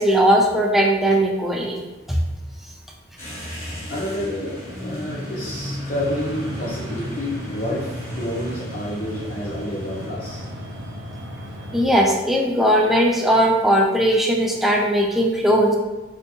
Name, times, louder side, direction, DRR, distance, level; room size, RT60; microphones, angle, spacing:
voice 1, 0.0-1.8 2.1-2.2 11.7-15.8, equal, ahead, -1 dB, 0.4 m, -18 dB
sound 1, 3.2-10.1, equal, 15° left, 1.0 m, -34 dB
voice 2, 3.9-10.4, left 1 dB, 50° left, -8 dB, 0.7 m, -29 dB
sound 2, 6.0-11.9, equal, 70° right, 0.6 m, -35 dB
3.4 x 2.6 x 2.8 m, 1.2 s
head